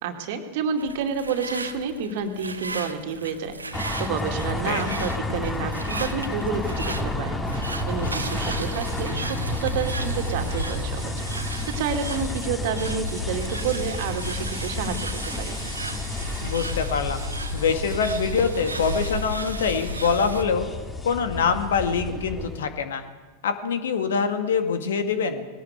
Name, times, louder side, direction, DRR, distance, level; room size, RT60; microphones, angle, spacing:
voice 1, 0.0-7.4 7.9-11.1 11.4-15.6, right 6 dB, 50° right, 6 dB, 2.4 m, -29 dB
sound 1, 0.8-20.4, right 3 dB, 80° right, 1.4 m, -34 dB
sound 2, 3.7-22.6, left 2 dB, 10° left, 2.2 m, -31 dB
voice 2, 4.5-4.9 16.4-17.2 17.5-20.7 21.0-23.0 23.4-25.5, left 6 dB, 60° left, 8 dB, 2.1 m, -24 dB
20.5 x 18.5 x 8.2 m, 1.4 s
figure-of-eight pair, 90°, 0 cm